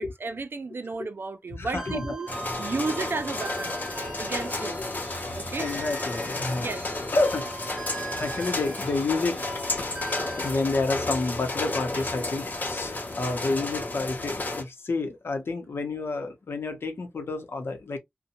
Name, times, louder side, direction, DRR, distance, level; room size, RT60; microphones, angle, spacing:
voice 1, 0.0-2.3 2.6-3.8 4.2-4.8 5.4-5.7 6.6-7.0, right 3 dB, 70° right, 0.4 m, -33 dB
voice 2, 1.6-2.1 2.5-2.6 5.6-6.7 7.1-7.8 8.1-9.5 10.4-18.0, left 3 dB, 90° left, 0.7 m, -29 dB
sound 1, 1.8-10.5, right 2 dB, 15° right, 0.9 m, -41 dB
sound 2, 2.3-14.6, left 2 dB, 45° left, 0.8 m, -32 dB
2.8 x 2.1 x 2.6 m
wide cardioid pair, 80°, 4 cm